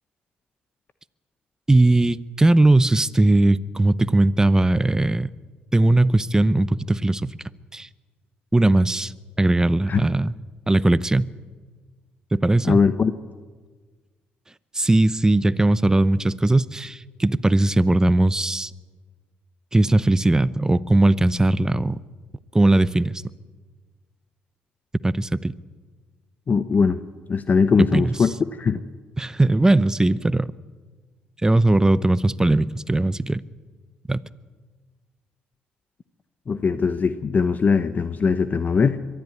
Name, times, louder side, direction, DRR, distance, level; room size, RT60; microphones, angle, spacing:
voice 1, 1.7-5.3 5.7-7.4 7.7-7.9 8.5-10.3 10.7-11.3 12.3-12.8 14.7-18.7 19.7-22.0 22.5-23.2 25.0-25.5 27.9-28.3 29.2-30.5 31.4-33.4 34.1-34.2, right 2 dB, 15° right, 17 dB, 0.8 m, -19 dB
voice 2, 12.6-13.1 26.5-27.0 27.3-28.3 28.6-28.8 36.5-39.0, left 5 dB, 40° left, 12 dB, 0.9 m, -20 dB
22.5 x 12.5 x 9.7 m, 1.4 s
supercardioid pair, 70°, 4 cm